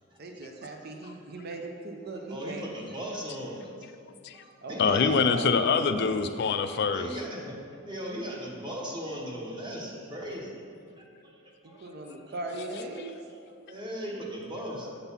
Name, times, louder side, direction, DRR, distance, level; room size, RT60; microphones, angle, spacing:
voice 1, 0.2-2.6 4.6-5.5 11.8-13.1, right 2 dB, 50° right, 3 dB, 0.6 m, -38 dB
voice 2, 1.1-1.5 2.3-3.9 4.3-5.3 6.2-6.3 6.9-7.6 7.9-10.6 11.0-12.2 13.3-13.4 13.7-14.9, equal, 20° right, -2 dB, 1.0 m, -38 dB
voice 3, 4.8-7.1, left 5 dB, 50° left, 9 dB, 0.3 m, -24 dB
7.9 x 4.0 x 5.5 m, 2.5 s
head